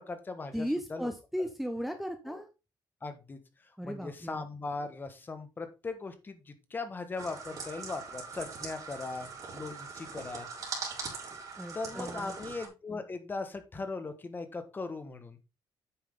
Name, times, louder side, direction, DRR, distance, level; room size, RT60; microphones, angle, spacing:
voice 1, 0.0-1.1 2.3-2.4 3.0-3.4 3.8-10.5 11.7-15.4, left 3 dB, 25° left, 8 dB, 1.5 m, -39 dB
voice 2, 0.5-2.5 3.8-4.4 11.6-12.4, equal, ahead, 6 dB, 1.0 m, -36 dB
sound 1, 7.2-12.7, right 4 dB, 45° right, 4.2 m, -41 dB
9.5 x 7.4 x 3.7 m, 0.28 s
cardioid pair, 130°, 8 cm